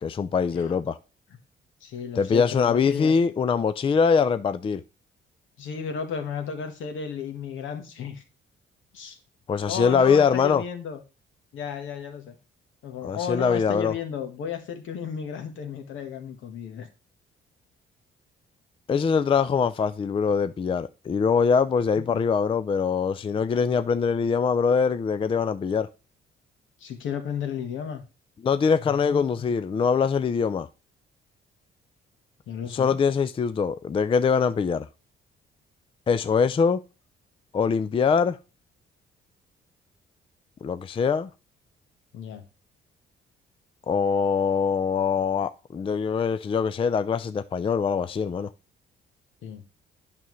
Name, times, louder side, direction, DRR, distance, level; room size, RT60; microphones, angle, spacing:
voice 1, 0.0-1.0 2.2-4.8 9.5-10.6 13.0-13.9 18.9-25.9 28.4-30.7 32.7-34.9 36.1-36.8 37.5-38.4 40.6-41.3 43.9-48.5, left 6 dB, 25° left, 0.4 m, -23 dB
voice 2, 1.8-3.1 5.6-8.2 8.9-9.2 9.7-11.0 11.5-12.4 12.8-16.9 22.1-22.2 26.8-28.0 28.8-29.5 32.5-33.0 42.1-42.4 49.4-49.6, left 7 dB, 80° left, 1.4 m, -34 dB
8.9 x 5.7 x 3.1 m
cardioid pair, 90°, 20 cm